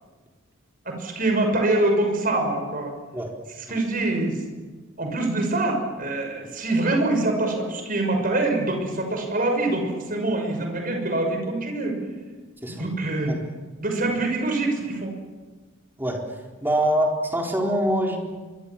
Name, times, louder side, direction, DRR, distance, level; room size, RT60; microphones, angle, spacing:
voice 1, 0.8-2.9 3.7-4.4 5.0-12.0 12.7-13.4 13.8-15.1, right 2 dB, 45° right, 4 dB, 6.4 m, -24 dB
voice 2, 16.6-18.2, right 1 dB, 10° right, 0 dB, 4.1 m, -24 dB
25.5 x 23.5 x 7.3 m, 1.3 s
head